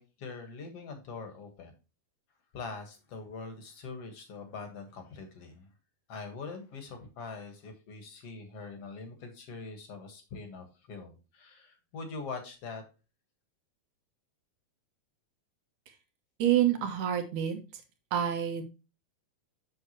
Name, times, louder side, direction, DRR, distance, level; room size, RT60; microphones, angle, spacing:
voice 1, 0.0-1.7 2.5-5.7 6.1-12.8, left 4 dB, 55° left, 6 dB, 2.0 m, -43 dB
voice 2, 16.4-17.8 18.1-18.6, right 11 dB, 65° right, 6 dB, 2.5 m, -28 dB
8.0 x 7.2 x 2.9 m, 0.30 s
omnidirectional pair, 4.2 m